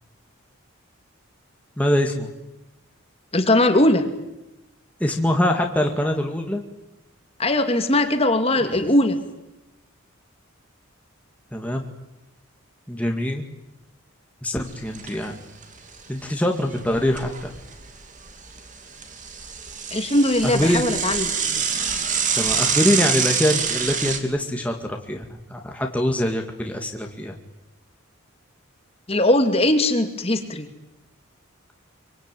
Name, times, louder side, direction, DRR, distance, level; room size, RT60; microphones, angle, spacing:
voice 1, 1.8-2.3 5.0-6.6 11.5-11.8 12.9-13.5 14.4-15.4 16.1-17.5 20.4-20.8 22.4-27.3, left 1 dB, 5° left, 2 dB, 2.2 m, -23 dB
voice 2, 3.3-4.0 7.4-9.2 19.9-21.6 29.1-30.7, left 1 dB, 30° left, 7 dB, 2.5 m, -20 dB
Bicycle / Mechanisms, 14.6-15.3 15.6-15.7 16.0-16.1 16.7-17.9 18.3-24.2, right 6 dB, 35° right, 2.9 m, -26 dB
26.0 x 24.0 x 9.3 m, 0.94 s
head